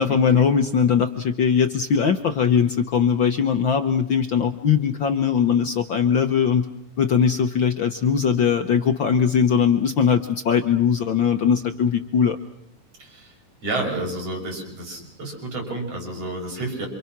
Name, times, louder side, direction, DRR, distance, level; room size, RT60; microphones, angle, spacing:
voice 1, 0.0-6.7 7.0-12.4, left 7 dB, 70° left, 8 dB, 1.1 m, -20 dB
voice 2, 13.0-13.4 13.6-16.9, right 2 dB, 50° right, 2 dB, 7.1 m, -30 dB
27.5 x 27.0 x 6.1 m, 0.81 s
omnidirectional pair, 3.7 m